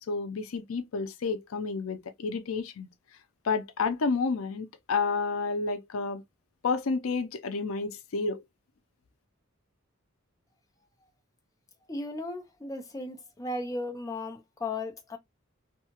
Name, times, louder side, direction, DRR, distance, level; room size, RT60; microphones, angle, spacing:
voice 1, 0.1-2.9 3.4-6.2 6.6-8.4, left 4 dB, 85° left, 0.5 m, -30 dB
voice 2, 11.9-15.2, left 2 dB, 15° left, 0.6 m, -36 dB
2.8 x 2.3 x 2.8 m
head